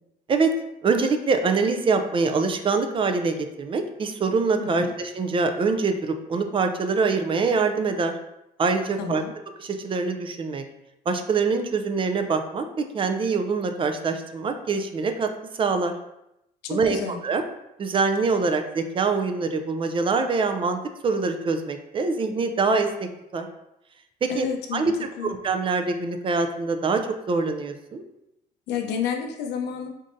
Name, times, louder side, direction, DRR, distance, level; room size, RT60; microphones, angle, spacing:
voice 1, 0.8-8.1 8.6-9.2 9.6-10.6 11.1-15.3 15.6-15.9 16.7-17.0 17.2-17.4 17.8-20.8 21.0-23.5 24.2-24.5 24.7-28.0, right 4 dB, 30° right, 6 dB, 0.4 m, -24 dB
voice 2, 4.6-4.9 9.0-9.3 16.6-17.2 24.3-24.9 25.2-25.3 28.7-29.9, left 7 dB, 85° left, 3 dB, 0.6 m, -30 dB
3.9 x 3.6 x 2.6 m, 0.84 s
cardioid pair, 110°, 17 cm